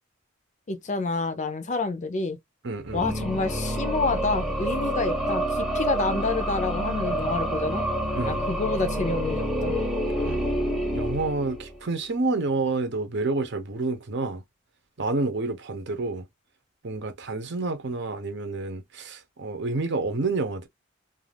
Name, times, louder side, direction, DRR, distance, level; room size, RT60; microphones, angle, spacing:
voice 1, 0.7-2.4 2.9-7.8 8.3-9.7, left 3 dB, 35° left, 0.5 m, -28 dB
voice 2, 2.6-3.0 8.2-8.4 10.2-10.5 10.9-14.4 15.0-16.3 16.8-20.7, right 3 dB, 60° right, 0.8 m, -29 dB
sound 1, 2.8-11.9, right 1 dB, ahead, 0.7 m, -28 dB
2.4 x 2.4 x 3.3 m
head